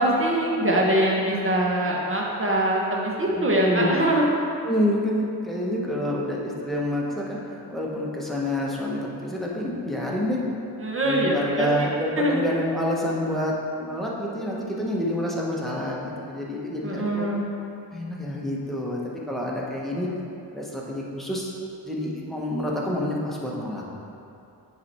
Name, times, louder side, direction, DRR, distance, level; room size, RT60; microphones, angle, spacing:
voice 1, 0.0-4.3 10.8-11.9 12.2-12.4 16.8-17.4, right 1 dB, 30° right, -2 dB, 1.1 m, -23 dB
voice 2, 3.3-3.9 4.6-10.4 11.0-17.3 17.9-19.0 19.3-20.1 20.5-21.5 21.8-23.8, left 1 dB, ahead, -4 dB, 1.0 m, -28 dB
9.4 x 3.4 x 4.2 m, 2.7 s
wide cardioid pair, 120°, 41 cm